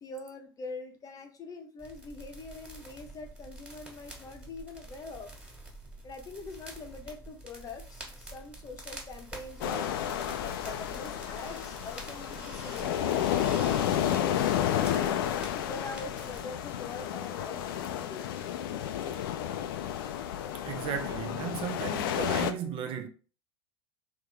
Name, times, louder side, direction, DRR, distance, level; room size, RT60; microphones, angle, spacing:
voice 1, 0.0-5.3 6.0-9.9 10.4-15.0 15.5-18.3, left 3 dB, 25° left, 0.9 m, -44 dB
sound 1, 1.8-16.5, right 1 dB, 5° right, 1.8 m, -47 dB
sound 2, 9.6-22.5, left 10 dB, 60° left, 0.5 m, -31 dB
voice 2, 20.7-23.1, right 8 dB, 40° right, 0.7 m, -35 dB
3.6 x 3.2 x 3.4 m
figure-of-eight pair, 85°, 13 cm